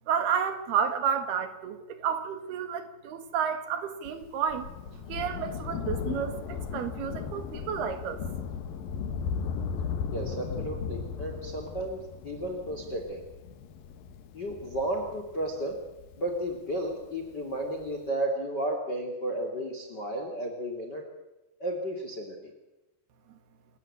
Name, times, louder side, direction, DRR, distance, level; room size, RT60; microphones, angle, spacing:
voice 1, 0.1-8.2, right 7 dB, 65° right, 9 dB, 3.8 m, -31 dB
Thunder, 4.1-16.9 17.8-17.9, left 6 dB, 65° left, 3.0 m, -36 dB
voice 2, 10.1-12.0 12.2-13.2 14.3-15.8 16.2-21.0 21.6-22.5, right 1 dB, 30° left, 4 dB, 2.7 m, -33 dB
27.5 x 14.5 x 8.7 m, 1.0 s
omnidirectional pair, 5.0 m